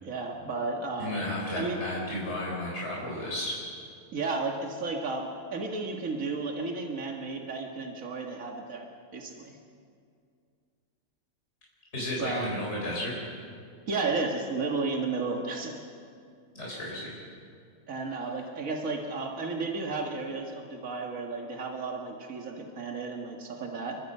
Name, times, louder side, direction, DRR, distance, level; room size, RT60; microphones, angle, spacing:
voice 1, 0.0-1.2 1.5-1.8 4.1-8.9 9.1-9.6 12.2-12.5 13.9-15.8 17.9-24.0, right 3 dB, 75° right, 1 dB, 2.2 m, -33 dB
voice 2, 1.0-3.6 11.9-13.1 16.5-17.1, left 1 dB, 50° left, -4 dB, 4.9 m, -33 dB
29.0 x 23.5 x 5.6 m, 2.3 s
omnidirectional pair, 1.4 m